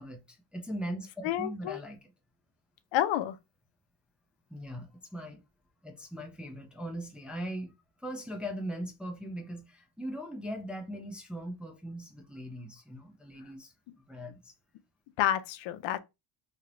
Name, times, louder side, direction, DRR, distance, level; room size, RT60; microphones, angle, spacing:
voice 1, 0.0-2.0 4.5-5.4 5.8-7.7 8.0-14.5, equal, ahead, 0.4 m, -40 dB
voice 2, 1.2-1.8 2.9-3.4 15.2-16.0, left 12 dB, 70° left, 0.6 m, -29 dB
3.2 x 2.8 x 2.5 m
cardioid pair, 125°, 47 cm